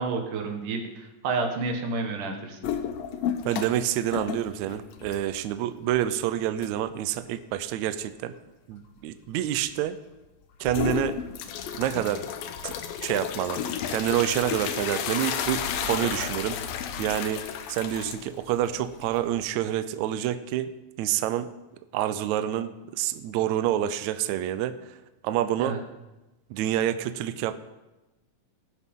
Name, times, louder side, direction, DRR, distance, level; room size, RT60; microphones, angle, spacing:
voice 1, 0.0-2.6 25.6-25.8, right 3 dB, 65° right, 3 dB, 3.0 m, -30 dB
sound 1, 2.6-3.8 4.1-5.5 5.9-6.0 6.6-6.7 10.6-19.4, left 8 dB, 85° left, 2.7 m, -32 dB
voice 2, 3.4-8.3 8.7-10.0 10.6-11.2 11.8-12.3 12.6-12.7 13.0-13.6 13.9-16.6 17.0-17.4 17.7-20.7 21.0-21.5 21.9-25.0 25.2-25.8 26.5-27.6, right 11 dB, 85° right, 11 dB, 1.6 m, -27 dB
19.5 x 11.5 x 3.7 m, 1.0 s
omnidirectional pair, 4.0 m